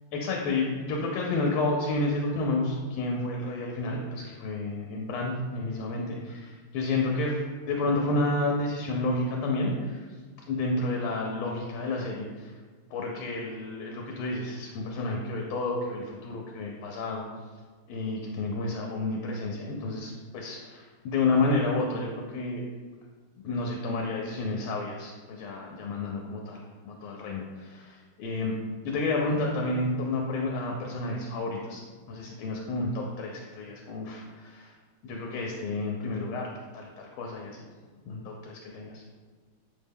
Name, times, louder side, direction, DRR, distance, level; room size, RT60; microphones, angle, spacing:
voice 1, 0.1-10.1 10.5-12.5 12.9-17.2 17.9-22.7 23.4-28.5 28.8-31.8 32.1-34.7 35.0-37.7 38.0-39.0, left 2 dB, 85° left, -1 dB, 1.5 m, -30 dB
6.0 x 2.1 x 3.5 m, 1.5 s
omnidirectional pair, 2.3 m